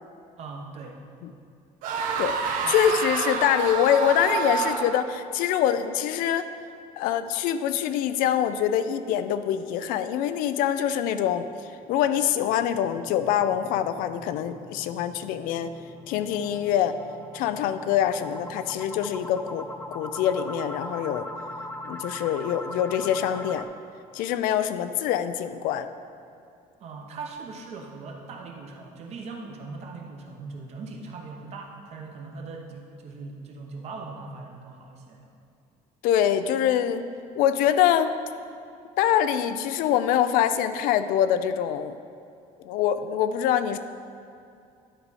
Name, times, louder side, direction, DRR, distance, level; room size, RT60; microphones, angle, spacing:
voice 1, 0.4-1.0 2.6-2.7 26.8-35.3, right 3 dB, 50° right, 1 dB, 1.0 m, -40 dB
sound 1, 1.8-5.2, right 6 dB, 70° right, 0.6 m, -28 dB
voice 2, 2.2-6.5 7.0-11.5 11.9-15.7 16.1-17.0 17.3-19.7 19.9-21.3 21.9-23.7 24.1-25.9 36.0-37.1 37.4-38.2 39.0-42.0 42.6-43.8, left 10 dB, 85° left, 11 dB, 0.4 m, -24 dB
sound 2, 4.0-5.5 5.9-6.0 6.4-6.5 6.9-7.0 11.8-23.6, left 1 dB, 10° left, 0.4 m, -41 dB
11.0 x 4.8 x 4.2 m, 2.5 s
cardioid pair, 155°, 14 cm